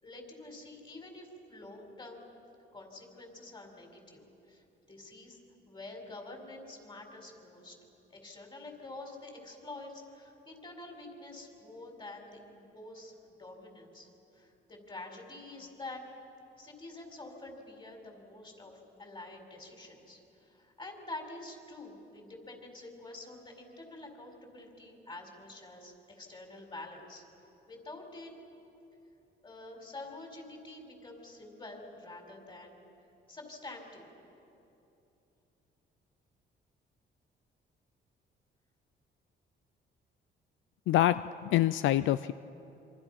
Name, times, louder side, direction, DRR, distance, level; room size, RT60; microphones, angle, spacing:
voice 1, 0.0-2.4 2.7-5.4 5.6-7.8 8.1-16.0 16.6-27.2 27.7-28.3 29.4-32.8 33.3-34.1, left 2 dB, 25° left, 2 dB, 5.1 m, -47 dB
voice 2, 40.9-42.3, left 13 dB, 80° left, 14 dB, 0.5 m, -26 dB
27.0 x 25.0 x 5.9 m, 2.8 s
cardioid pair, 90°, 20 cm